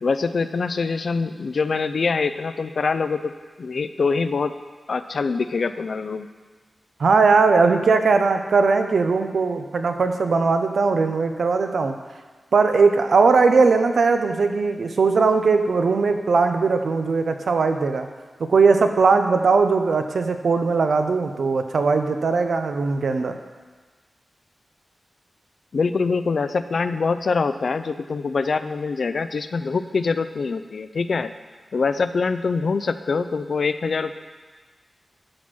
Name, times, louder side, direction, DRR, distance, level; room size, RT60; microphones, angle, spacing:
voice 1, 0.0-3.3 3.6-4.5 4.9-6.3 25.7-31.3 31.7-34.2, left 4 dB, 60° left, 11 dB, 0.4 m, -24 dB
voice 2, 7.0-11.9 12.5-18.1 18.4-23.4, right 4 dB, 75° right, 6 dB, 0.7 m, -19 dB
12.5 x 4.3 x 6.2 m, 1.4 s
wide cardioid pair, 125°, 0 cm